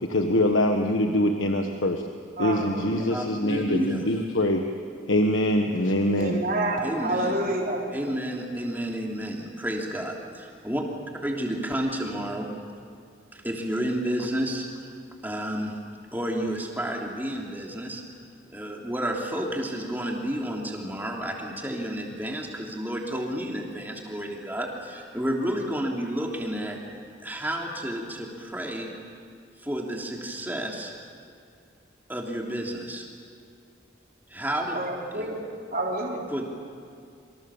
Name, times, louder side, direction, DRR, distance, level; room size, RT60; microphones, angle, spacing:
voice 1, 0.0-2.0 2.4-4.6 5.1-6.4, left 1 dB, 90° left, 4 dB, 1.4 m, -24 dB
voice 2, 2.4-3.1 6.2-7.8 34.7-35.4 35.7-36.2, right 1 dB, 45° right, -2 dB, 4.1 m, -28 dB
voice 3, 3.1-4.0 6.8-7.4 7.9-10.8 11.2-12.5 13.3-14.7 15.2-15.8 16.1-18.0 18.5-28.9 29.6-30.9 32.1-33.1 34.3-34.8 35.1-35.3 36.3-36.5, right 1 dB, 10° right, -1 dB, 3.1 m, -31 dB
27.5 x 25.0 x 7.3 m, 2.4 s
head